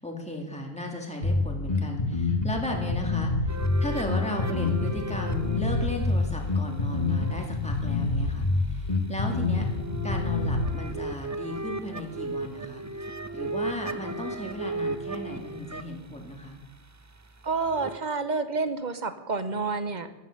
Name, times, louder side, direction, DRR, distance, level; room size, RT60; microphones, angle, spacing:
voice 1, 0.0-9.7 10.0-16.6, left 1 dB, 5° left, 1 dB, 2.4 m, -36 dB
Bass guitar, 1.2-10.8, left 3 dB, 40° left, 2.3 m, -27 dB
sound 1, 3.5-7.9 8.8-18.0, right 2 dB, 20° right, 0.5 m, -37 dB
voice 2, 17.4-20.1, right 4 dB, 45° right, 11 dB, 1.1 m, -29 dB
15.0 x 11.0 x 6.6 m, 1.1 s
omnidirectional pair, 1.0 m